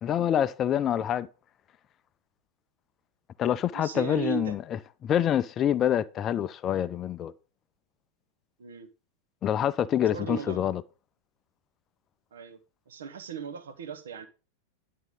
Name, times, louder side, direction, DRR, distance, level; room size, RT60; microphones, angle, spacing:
voice 1, 0.0-1.3 3.4-7.3 9.4-10.8, left 10 dB, 30° left, 0.4 m, -26 dB
voice 2, 3.7-4.5 8.6-8.9 10.0-10.6 12.3-12.6 12.9-14.3, right 10 dB, 65° right, 1.0 m, -37 dB
10.5 x 3.8 x 5.1 m
figure-of-eight pair, 90°, 0 cm